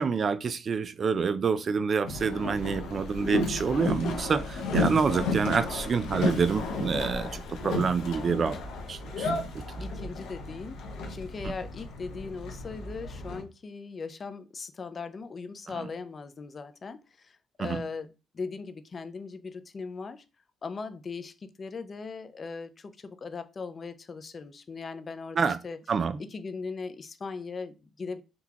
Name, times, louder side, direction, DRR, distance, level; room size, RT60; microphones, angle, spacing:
voice 1, 0.0-8.6 8.9-9.3 9.5-9.8 11.4-11.5 15.8-15.9 17.6-17.8 25.4-25.6 25.9-26.2, right 5 dB, 45° right, 0.3 m, -27 dB
Boat Water vehicle, 2.0-13.4, left 3 dB, 85° left, 0.7 m, -33 dB
voice 2, 4.8-5.2 9.8-10.8 11.1-18.1 18.3-20.2 20.6-25.8 26.3-28.2, left 4 dB, 40° left, 0.4 m, -39 dB
3.8 x 2.3 x 2.8 m
cardioid pair, 90°, 0 cm